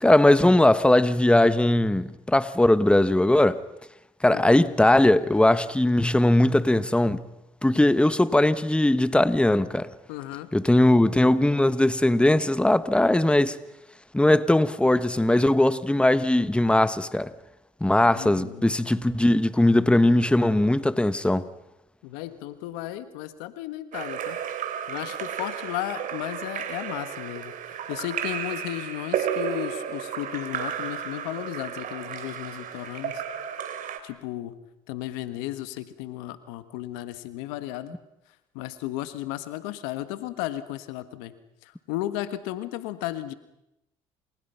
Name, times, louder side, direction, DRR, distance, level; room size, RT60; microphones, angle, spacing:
voice 1, 0.0-3.6 4.2-7.3 7.6-9.9 10.5-13.6 14.1-17.3 17.8-21.5, left 1 dB, 5° left, 1.4 m, -20 dB
voice 2, 10.1-10.5 18.1-18.7 22.0-24.4 24.9-33.2 34.0-34.6 34.9-38.0 38.5-41.3 41.6-43.3, left 14 dB, 90° left, 1.6 m, -34 dB
Splash splatter / Drip / Trickle dribble, 23.9-34.0, right 9 dB, 65° right, 3.2 m, -33 dB
29.0 x 28.0 x 5.8 m
supercardioid pair, 70°, 15 cm